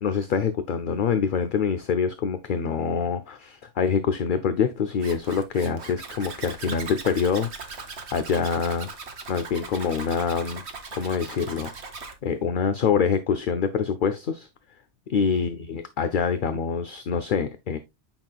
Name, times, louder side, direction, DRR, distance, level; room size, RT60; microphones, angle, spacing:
voice 1, 0.0-8.9 9.3-10.6 10.9-11.7 12.2-14.5 15.1-17.8, left 6 dB, 50° left, 0.7 m, -25 dB
Zipper (clothing), 5.0-12.1, right 4 dB, 65° right, 1.5 m, -39 dB
8.9 x 5.7 x 2.3 m
omnidirectional pair, 1.2 m